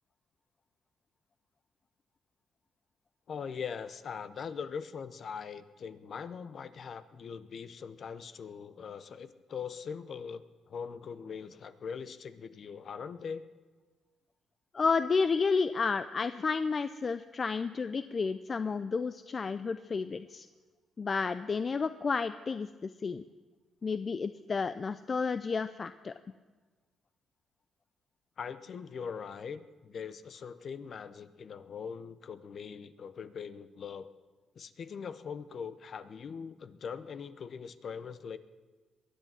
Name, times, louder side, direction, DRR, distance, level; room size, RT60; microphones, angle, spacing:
voice 1, 3.3-13.4 28.4-34.1 34.5-38.4, left 6 dB, 55° left, 13 dB, 0.8 m, -41 dB
voice 2, 14.7-20.5 21.0-23.2 23.8-26.1, left 4 dB, 40° left, 12 dB, 0.5 m, -31 dB
22.0 x 8.3 x 7.4 m, 1.3 s
cardioid pair, 90°, 0 cm